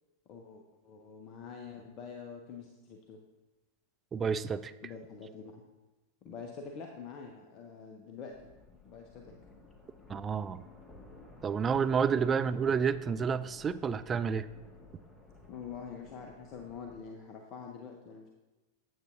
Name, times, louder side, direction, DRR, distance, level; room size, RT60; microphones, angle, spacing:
voice 1, 0.3-3.2 4.8-5.6 6.2-8.5 8.8-9.4 15.5-18.3, left 6 dB, 35° left, 3 dB, 0.7 m, -46 dB
voice 2, 4.1-4.7 10.1-10.6 11.4-14.5, right 6 dB, 20° right, 12 dB, 0.3 m, -30 dB
sound 1, 8.3-17.0, left 2 dB, 10° left, 1.2 m, -54 dB
8.9 x 8.1 x 2.5 m, 1.1 s
figure-of-eight pair, 90°, 0 cm